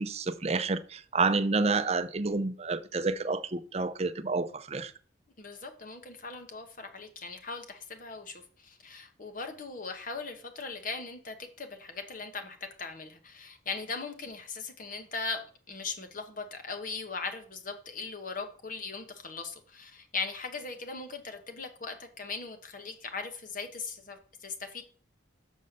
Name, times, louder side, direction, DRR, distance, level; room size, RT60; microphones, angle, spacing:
voice 1, 0.0-4.9, right 3 dB, 35° right, 0.5 m, -29 dB
voice 2, 5.4-24.8, left 4 dB, 45° left, 1.2 m, -39 dB
6.3 x 5.5 x 6.6 m
head